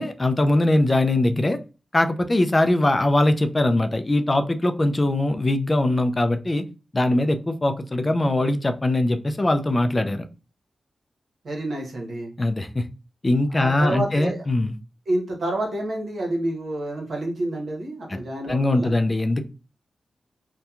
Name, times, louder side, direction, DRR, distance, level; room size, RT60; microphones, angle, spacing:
voice 1, 0.0-1.6 1.9-6.6 6.9-10.3 12.4-12.8 13.2-14.7 18.5-19.4, left 1 dB, 30° left, 8 dB, 0.3 m, -21 dB
voice 2, 11.4-12.3 13.5-14.4 15.1-18.9, right 1 dB, 80° right, 0 dB, 0.9 m, -28 dB
2.8 x 2.2 x 2.3 m, 0.33 s
wide cardioid pair, 80°, 0 cm